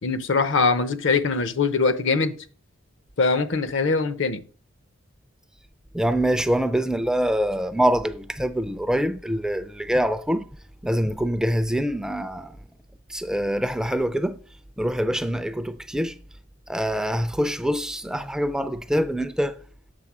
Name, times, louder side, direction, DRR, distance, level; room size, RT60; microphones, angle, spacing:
voice 1, 0.0-2.4 3.2-4.4, left 4 dB, 65° left, 0.7 m, -22 dB
voice 2, 5.9-10.5 10.8-12.6 13.1-14.4 14.8-16.2 16.7-19.6, equal, 5° right, 0.3 m, -24 dB
7.7 x 3.6 x 6.0 m
head